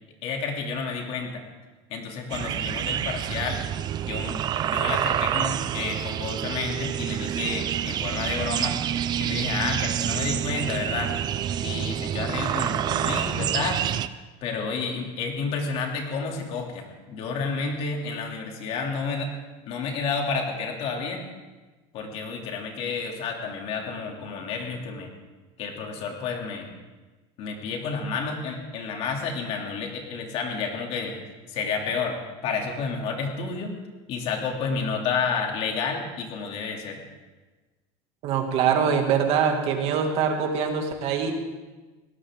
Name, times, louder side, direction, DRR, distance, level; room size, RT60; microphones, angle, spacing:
voice 1, 0.2-1.4 1.9-3.6 4.0-8.8 9.2-11.1 11.6-13.9 14.4-19.3 19.7-21.2 21.9-25.1 25.6-26.7 27.4-31.2 31.5-33.7 34.1-37.0, left 5 dB, 50° left, 1 dB, 2.8 m, -30 dB
sound 1, 2.3-14.1, right 10 dB, 30° right, 0.5 m, -28 dB
voice 2, 38.2-41.3, right 7 dB, 50° right, 3 dB, 2.2 m, -23 dB
20.0 x 18.0 x 3.7 m, 1.2 s
cardioid pair, 155°, 13 cm